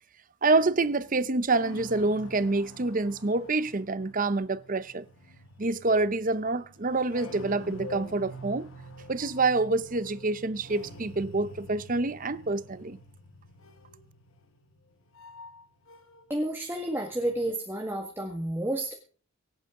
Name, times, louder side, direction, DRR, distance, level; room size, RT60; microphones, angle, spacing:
voice 1, 0.4-5.0 5.6-8.7 9.1-13.0, right 3 dB, 40° right, 0.7 m, -27 dB
sound 1, 0.6-16.4 16.6-17.5, left 1 dB, 70° left, 1.5 m, -47 dB
voice 2, 16.3-18.9, right 1 dB, 10° right, 1.7 m, -30 dB
24.5 x 9.0 x 3.8 m
head